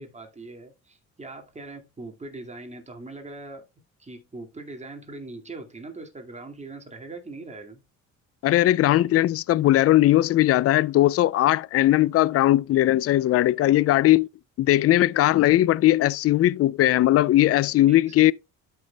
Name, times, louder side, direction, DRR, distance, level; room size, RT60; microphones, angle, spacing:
voice 1, 0.0-3.6 4.0-7.8 17.9-18.0, right 2 dB, 20° right, 2.2 m, -41 dB
voice 2, 8.4-14.3 14.6-18.3, left 14 dB, 50° left, 0.4 m, -19 dB
13.0 x 5.7 x 2.3 m
cardioid pair, 90°, 30 cm